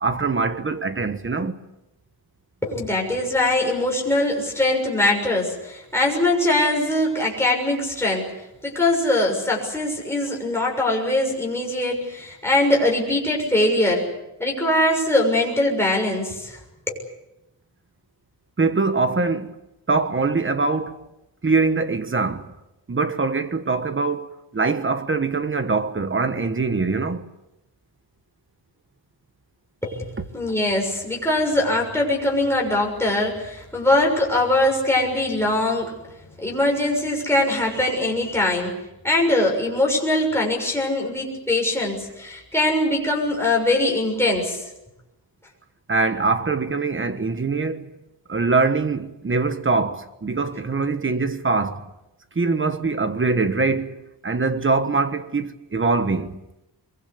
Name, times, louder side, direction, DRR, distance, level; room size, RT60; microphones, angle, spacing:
voice 1, 0.0-1.6 18.6-19.5 19.9-21.0 21.4-22.4 22.9-27.3 45.9-47.9 48.3-51.8 52.3-56.4, right 4 dB, 30° right, 1.4 m, -23 dB
voice 2, 2.6-8.3 8.6-14.1 14.4-16.6 16.9-17.0 29.8-35.9 36.4-38.8 39.0-44.6, left 1 dB, 5° left, 6.6 m, -22 dB
24.0 x 23.0 x 8.1 m
wide cardioid pair, 155°, 43 cm